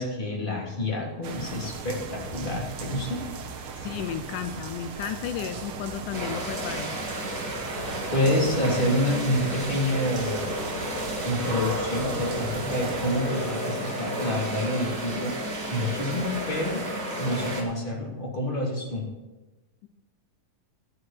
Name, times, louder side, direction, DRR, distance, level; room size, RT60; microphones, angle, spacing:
voice 1, 0.0-3.2 8.1-10.4 11.2-15.4 15.7-16.8 17.2-19.1, left 1 dB, 15° left, -3 dB, 2.8 m, -28 dB
sound 1, 1.2-13.1, right 5 dB, 75° right, 1.2 m, -38 dB
voice 2, 3.8-6.9, left 9 dB, 75° left, 9 dB, 2.1 m, -33 dB
sound 2, 6.1-17.6, equal, 30° right, 2.2 m, -32 dB
sound 3, 11.0-16.5, right 8 dB, 50° right, 2.6 m, -46 dB
12.5 x 7.9 x 7.5 m, 1.1 s
omnidirectional pair, 4.1 m